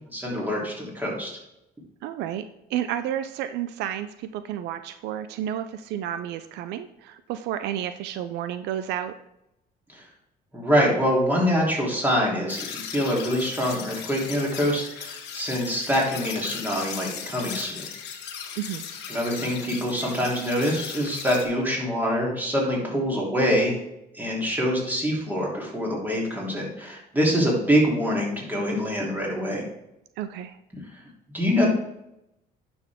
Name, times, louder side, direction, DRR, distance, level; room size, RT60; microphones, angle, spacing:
voice 1, 0.1-1.3 10.5-17.8 19.1-23.7 24.1-29.6 31.3-31.7, equal, 10° right, -3 dB, 3.3 m, -25 dB
voice 2, 2.0-2.4 2.7-9.1 18.6-18.8 30.2-30.6, right 10 dB, 85° right, 11 dB, 0.6 m, -31 dB
sound 1, 12.5-21.4, left 7 dB, 90° left, 1.4 m, -37 dB
10.0 x 6.2 x 3.6 m, 0.85 s
cardioid pair, 110°, 17 cm